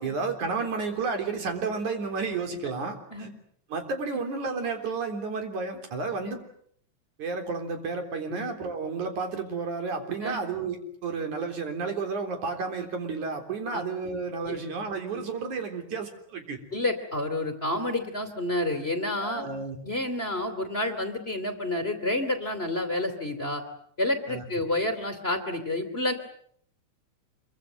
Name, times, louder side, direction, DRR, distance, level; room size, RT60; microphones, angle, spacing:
voice 1, 0.0-3.3 3.7-6.4 7.2-16.6 19.2-19.8 24.3-24.4, right 4 dB, 85° right, 6 dB, 5.1 m, -32 dB
voice 2, 16.7-19.5 19.8-23.6 24.0-26.1, left 1 dB, 20° left, 7 dB, 2.7 m, -29 dB
26.0 x 24.0 x 7.9 m, 0.65 s
omnidirectional pair, 3.4 m